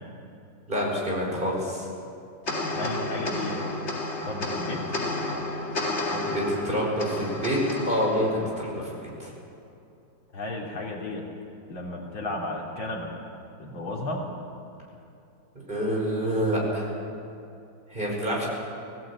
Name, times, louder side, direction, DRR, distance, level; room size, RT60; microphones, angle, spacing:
voice 1, 0.7-1.9 6.1-7.6 7.9-9.3 15.7-17.0 17.9-18.5, equal, 25° right, -3 dB, 5.6 m, -27 dB
sound 1, 2.5-9.1, left 2 dB, 35° left, 2.4 m, -31 dB
voice 2, 2.7-3.6 4.2-4.8 10.3-11.2 11.7-13.2 13.6-14.3, left 2 dB, 80° left, -2 dB, 3.8 m, -33 dB
21.0 x 17.0 x 8.5 m, 2.6 s
omnidirectional pair, 2.2 m